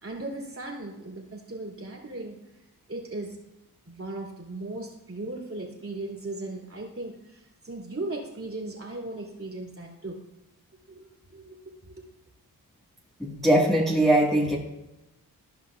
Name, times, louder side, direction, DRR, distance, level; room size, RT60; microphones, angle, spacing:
voice 1, 0.0-2.4 2.9-3.4 3.9-10.2 10.9-11.6 11.8-12.0, right 2 dB, 40° right, -1 dB, 2.7 m, -37 dB
voice 2, 13.2-14.6, right 1 dB, ahead, -4 dB, 1.8 m, -21 dB
14.5 x 5.3 x 2.5 m, 0.97 s
cardioid pair, 55°, 36 cm